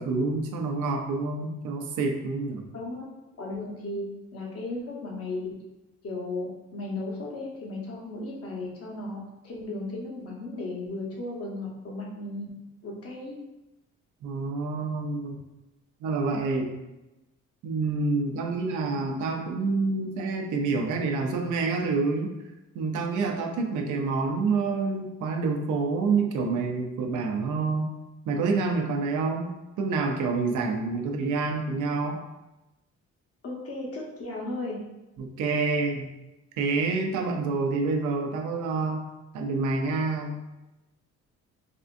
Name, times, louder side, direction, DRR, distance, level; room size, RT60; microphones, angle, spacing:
voice 1, 0.0-2.7 14.2-15.4 16.0-16.7 17.6-22.3 22.7-27.9 28.3-29.5 29.8-32.2 35.2-36.1 36.6-39.0 39.3-40.3, right 4 dB, 80° right, 2 dB, 0.6 m, -27 dB
voice 2, 3.4-4.0 4.3-5.5 6.0-9.2 9.4-12.5 12.8-13.4 33.4-34.8, left 2 dB, 50° left, -2 dB, 1.0 m, -35 dB
3.5 x 2.5 x 2.5 m, 0.99 s
cardioid pair, 90°, 30 cm